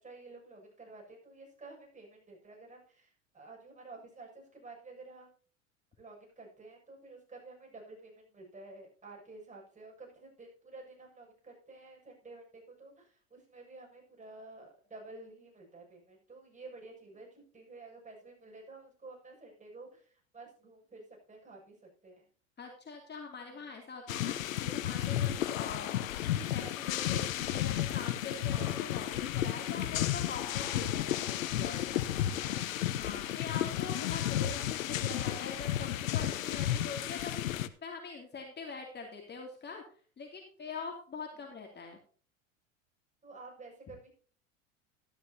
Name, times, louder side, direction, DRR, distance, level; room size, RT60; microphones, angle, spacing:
voice 1, 0.0-5.3 6.0-21.8 22.0-22.2 23.5-23.8 28.4-28.9 32.3-32.8 41.3-41.5 43.2-44.1, right 3 dB, 20° right, 0 dB, 7.1 m, -51 dB
voice 2, 22.6-26.0 26.2-32.0 33.0-37.5 37.8-39.8 40.2-42.0, left 4 dB, 25° left, 1 dB, 2.8 m, -43 dB
sound 1, 24.1-37.7, left 12 dB, 80° left, 0.9 m, -33 dB
13.0 x 11.5 x 2.8 m, 0.42 s
hypercardioid pair, 90°, 39 cm